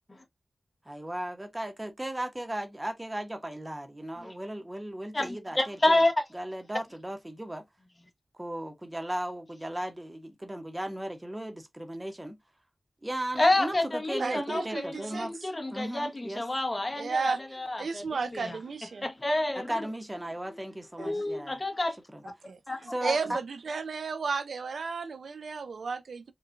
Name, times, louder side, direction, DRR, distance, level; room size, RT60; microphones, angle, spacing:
voice 1, 0.8-6.0 6.3-7.7 8.3-12.4 13.0-15.3 15.7-16.4 19.5-21.6 22.1-22.2 22.9-23.4, right 1 dB, 20° right, 0.9 m, -36 dB
voice 2, 5.1-6.1 13.4-18.6 19.0-19.7 21.0-22.0 22.7-23.1, left 2 dB, 35° left, 1.1 m, -29 dB
voice 3, 14.2-15.3 17.0-17.4 17.8-19.1 21.0-21.2 22.5-26.3, right 5 dB, 90° right, 0.4 m, -33 dB
4.3 x 2.4 x 2.5 m
wide cardioid pair, 65°, 0 cm